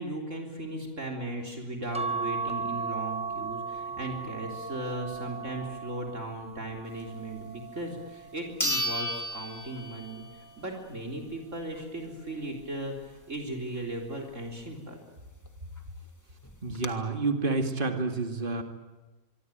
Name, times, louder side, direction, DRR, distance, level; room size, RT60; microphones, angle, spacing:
voice 1, 0.0-10.2 10.6-15.0, right 1 dB, 55° right, 1 dB, 4.0 m, -37 dB
sound 1, 1.9-8.6 9.2-10.6 11.8-12.3 12.6-12.7, right 4 dB, 5° right, 0.9 m, -37 dB
sound 2, 7.8-7.9 8.6-10.4 10.7-10.8 15.5-15.6 15.8-15.9 16.4-16.9, equal, 10° left, 1.9 m, -32 dB
voice 2, 16.6-18.6, right 3 dB, 35° right, 5 dB, 2.5 m, -29 dB
25.0 x 24.0 x 9.3 m, 1.2 s
omnidirectional pair, 1.5 m